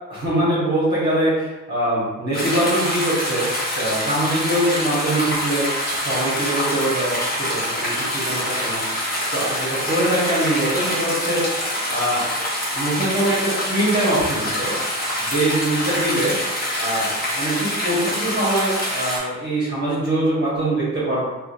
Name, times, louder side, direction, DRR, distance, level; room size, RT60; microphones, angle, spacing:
voice 1, 0.1-5.7 5.9-8.8 9.3-11.5 11.9-12.3 12.7-14.7 15.2-16.3 16.7-17.1 17.3-21.2, right 1 dB, 30° right, -10 dB, 1.5 m, -23 dB
sound 1, 2.3-19.2, equal, 30° left, 1.1 m, -25 dB
3.6 x 2.6 x 2.5 m, 1.1 s
cardioid pair, 90°, 33 cm